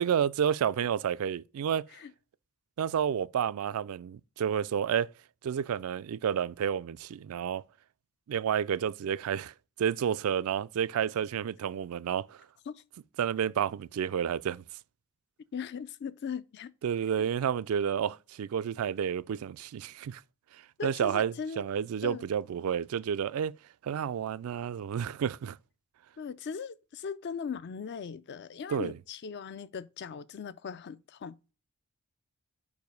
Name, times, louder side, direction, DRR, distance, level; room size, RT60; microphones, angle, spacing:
voice 1, 0.0-1.8 2.8-5.1 5.4-7.6 8.3-9.5 9.8-12.4 13.2-14.6 16.8-20.2 20.8-23.5 23.8-25.6 28.7-28.9, right 8 dB, 70° right, 0.3 m, -30 dB
voice 2, 15.5-16.7 20.8-21.6 22.0-22.3 26.2-31.5, left 6 dB, 50° left, 0.4 m, -39 dB
4.9 x 4.7 x 5.3 m
head